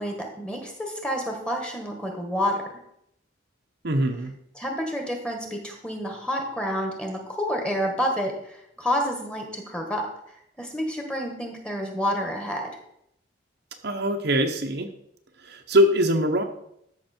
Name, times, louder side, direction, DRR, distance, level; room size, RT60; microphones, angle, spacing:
voice 1, 0.0-2.6 4.5-10.0 10.6-12.7, equal, 5° left, 2 dB, 1.6 m, -29 dB
voice 2, 3.8-4.3 13.8-14.9 15.4-16.4, equal, 55° right, 4 dB, 0.9 m, -22 dB
13.5 x 5.9 x 4.4 m, 0.75 s
head